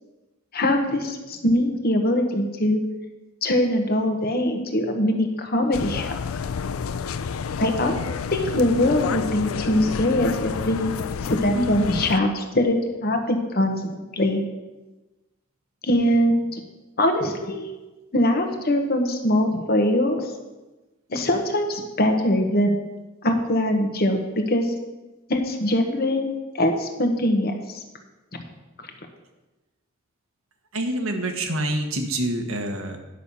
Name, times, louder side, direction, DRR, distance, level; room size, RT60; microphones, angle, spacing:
voice 1, 0.5-2.8 3.4-6.1 7.6-10.9 11.2-14.4 15.8-16.6 17.0-17.7 18.1-20.2 21.1-22.8 23.2-24.7 25.3-27.8, left 1 dB, 50° left, 4 dB, 1.2 m, -22 dB
sound 1, 5.7-12.2, left 6 dB, 85° left, 0.4 m, -29 dB
voice 2, 30.7-33.0, right 1 dB, 85° right, 4 dB, 1.4 m, -26 dB
10.0 x 6.5 x 5.5 m, 1.1 s
head